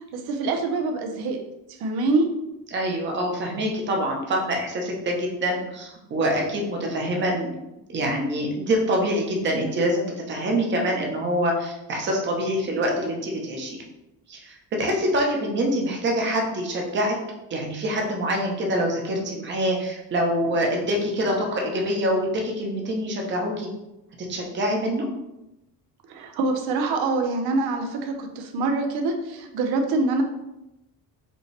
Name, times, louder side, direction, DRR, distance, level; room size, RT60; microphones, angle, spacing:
voice 1, 0.1-1.4 1.7-2.3 26.1-30.2, right 3 dB, 80° right, 4 dB, 0.7 m, -25 dB
voice 2, 2.7-7.5 7.9-13.8 14.3-17.2 17.5-23.7 24.3-25.1, equal, 30° right, 0 dB, 0.8 m, -25 dB
5.2 x 2.8 x 3.2 m, 0.92 s
cardioid pair, 170°, 37 cm